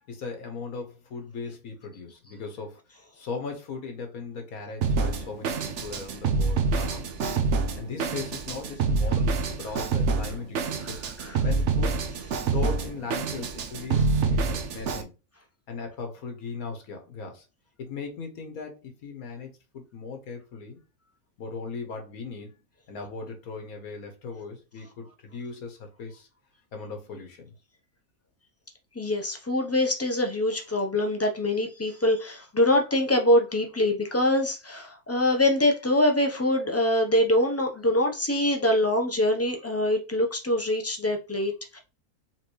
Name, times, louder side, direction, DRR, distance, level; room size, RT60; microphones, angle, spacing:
voice 1, 0.1-7.3 7.8-11.0 11.4-12.0 12.5-15.1 15.7-17.4 17.8-20.8 21.4-26.3 26.7-27.5, left 4 dB, 75° left, 1.4 m, -38 dB
Drum kit, 4.8-15.0, right 4 dB, 60° right, 0.9 m, -27 dB
voice 2, 29.0-41.8, left 1 dB, 20° left, 0.4 m, -24 dB
4.4 x 3.7 x 3.1 m
omnidirectional pair, 1.5 m